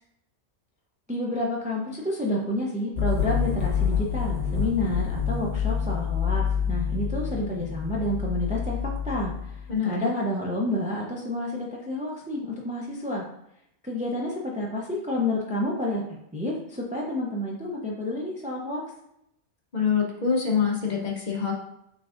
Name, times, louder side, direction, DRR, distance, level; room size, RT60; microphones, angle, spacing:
voice 1, 1.1-8.8 9.0-13.2 13.8-16.0 16.3-18.8, left 1 dB, 10° right, -2 dB, 0.4 m, -29 dB
sound 1, 2.9-9.7, left 7 dB, 75° left, 1.1 m, -27 dB
voice 2, 9.7-10.1 19.7-21.6, left 6 dB, 45° left, -1 dB, 0.8 m, -25 dB
5.9 x 3.4 x 2.5 m, 0.79 s
omnidirectional pair, 1.2 m